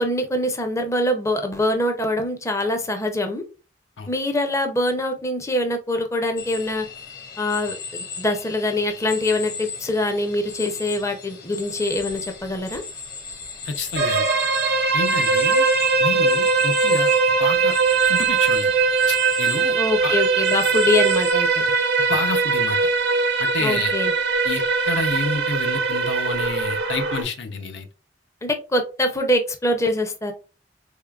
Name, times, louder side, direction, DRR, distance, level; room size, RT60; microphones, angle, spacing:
voice 1, 0.0-3.4 4.1-6.9 7.4-12.8 19.8-21.6 23.6-24.1 28.4-30.3, left 1 dB, 15° left, 6 dB, 0.5 m, -24 dB
sound 1, 6.4-21.3, left 5 dB, 55° left, 1.2 m, -36 dB
voice 2, 13.7-14.3 14.9-15.7 16.0-17.1 17.4-17.7 18.1-18.7 19.1-19.8 20.0-20.1 22.1-22.8 23.4-23.9 24.4-27.9, left 4 dB, 75° left, 6 dB, 0.6 m, -29 dB
sound 2, 14.0-27.2, right 4 dB, 65° right, 0.6 m, -20 dB
3.6 x 3.4 x 2.3 m, 0.32 s
head